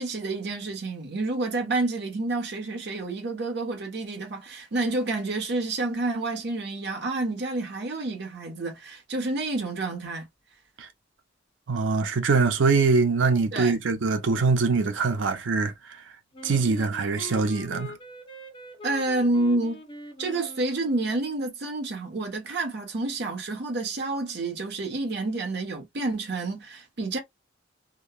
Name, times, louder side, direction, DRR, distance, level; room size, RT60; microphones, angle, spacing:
voice 1, 0.0-10.3 13.5-13.8 18.8-19.8 20.2-27.2, right 2 dB, 60° right, 0.9 m, -29 dB
voice 2, 11.7-15.7 16.4-18.0, right 4 dB, 85° right, 0.6 m, -23 dB
Wind instrument woodwind instrument, 16.3-21.4, left 2 dB, 25° left, 0.6 m, -43 dB
2.9 x 2.2 x 2.2 m
head